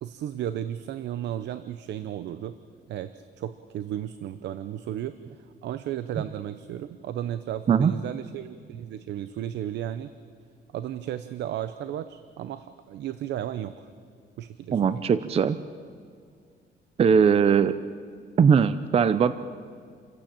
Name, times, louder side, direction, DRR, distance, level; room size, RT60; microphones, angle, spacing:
voice 1, 0.0-2.6 2.9-5.2 5.6-10.1 10.7-13.9 14.4-15.0, right 11 dB, 70° right, 12 dB, 0.8 m, -34 dB
voice 2, 14.7-15.6 17.0-17.8 18.4-19.3, right 7 dB, 35° right, 13 dB, 0.6 m, -20 dB
28.5 x 15.0 x 8.7 m, 2.1 s
cardioid pair, 145°, 18 cm